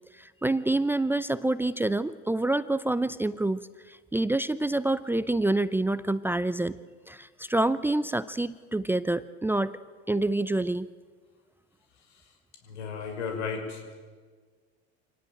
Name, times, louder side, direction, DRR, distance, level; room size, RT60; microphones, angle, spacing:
voice 1, 0.2-3.6 4.1-6.8 7.1-9.7 10.1-10.9, right 2 dB, 5° right, 15 dB, 0.6 m, -27 dB
voice 2, 12.6-13.8, left 5 dB, 85° left, 5 dB, 6.1 m, -34 dB
25.0 x 18.5 x 9.0 m, 1.5 s
hypercardioid pair, 100°, 34 cm